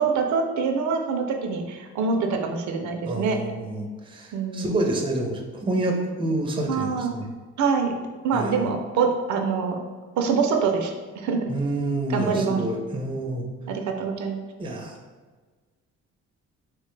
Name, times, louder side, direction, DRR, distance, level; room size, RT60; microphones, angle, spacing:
voice 1, 0.0-3.4 4.3-4.8 6.7-7.1 7.6-7.9 8.2-9.8 10.2-11.5 12.1-12.6 13.7-14.4, right 5 dB, 70° right, 4 dB, 0.5 m, -25 dB
voice 2, 3.0-7.3 8.3-8.7 11.5-13.5 14.6-15.0, right 2 dB, 15° right, 2 dB, 0.5 m, -28 dB
3.1 x 2.1 x 3.1 m, 1.3 s
cardioid pair, 90°, 30 cm